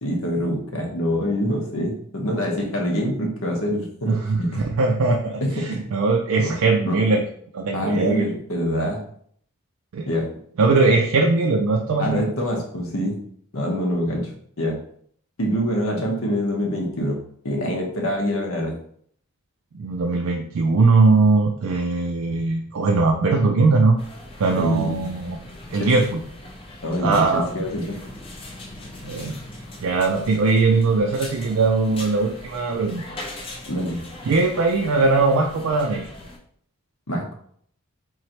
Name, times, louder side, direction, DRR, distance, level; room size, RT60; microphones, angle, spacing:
voice 1, 0.0-4.6 5.4-5.8 6.4-6.5 6.9-7.0 7.7-9.0 10.1-10.3 12.0-13.2 13.5-14.3 14.6-14.8 15.4-18.7 24.5-25.1 25.7-25.9 26.8-28.0 33.7-34.0 37.1-37.3, equal, 65° left, 1 dB, 0.9 m, -25 dB
voice 2, 4.1-7.2 7.5-8.3 9.9-10.1 10.6-12.3 19.7-24.0 24.4-25.4 25.7-26.2 27.0-27.5 29.0-29.4 29.8-33.0 34.2-36.1, right 3 dB, 70° right, 1 dB, 0.4 m, -20 dB
sound 1, 24.0-36.4, left 1 dB, 25° left, 0.5 m, -40 dB
3.8 x 3.1 x 2.9 m, 0.63 s
head